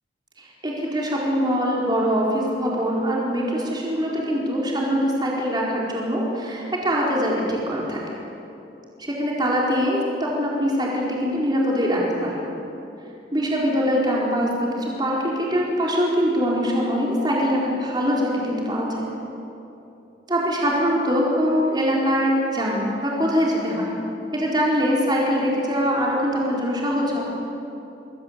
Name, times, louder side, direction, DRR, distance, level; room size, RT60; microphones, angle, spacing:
voice 1, 0.4-8.0 9.0-12.5 13.3-19.1 20.3-24.0 24.3-27.2, equal, 25° right, -4 dB, 4.6 m, -23 dB
27.0 x 22.0 x 8.3 m, 2.8 s
head